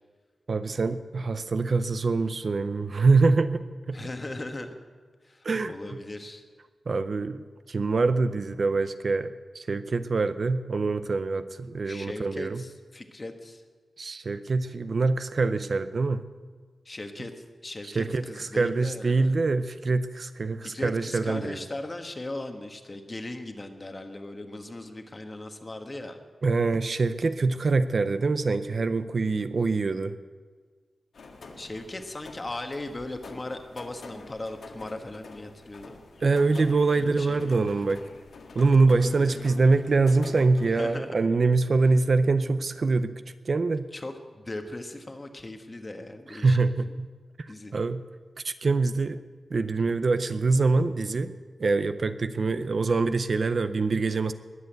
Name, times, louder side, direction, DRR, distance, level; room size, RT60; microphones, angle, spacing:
voice 1, 0.5-4.1 5.4-5.7 6.9-7.4 7.7-12.6 14.0-16.3 17.9-21.6 26.4-30.2 36.2-38.0 38.6-43.1 43.5-43.9 46.3-47.1 47.7-48.0 48.4-49.2 49.5-51.3 51.6-54.3, right 3 dB, 45° right, 11 dB, 0.5 m, -24 dB
voice 2, 3.9-4.7 5.2-6.4 11.9-13.6 16.8-17.3 17.6-19.4 20.6-26.2 31.6-36.0 36.9-38.0 38.9-39.7 40.6-41.3 43.9-46.6 47.5-47.8, left 2 dB, 25° left, 6 dB, 1.3 m, -38 dB
sound 1, 31.1-40.7, left 3 dB, 75° left, 1.8 m, -47 dB
20.5 x 8.1 x 8.0 m, 1.5 s
wide cardioid pair, 155°, 0 cm